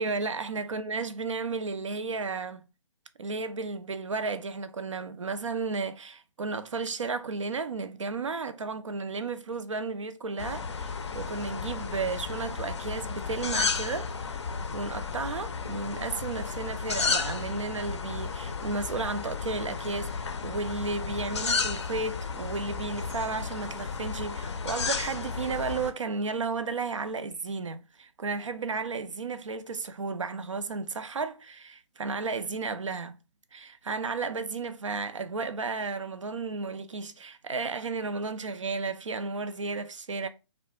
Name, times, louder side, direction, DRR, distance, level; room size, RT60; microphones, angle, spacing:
voice 1, 0.0-2.7 3.2-14.5 14.7-33.2 33.5-40.3, right 4 dB, 75° right, 0.4 m, -33 dB
sound 1, 10.4-25.9, left 5 dB, 60° left, 0.4 m, -33 dB
2.2 x 2.0 x 3.0 m
figure-of-eight pair, 130°, 16 cm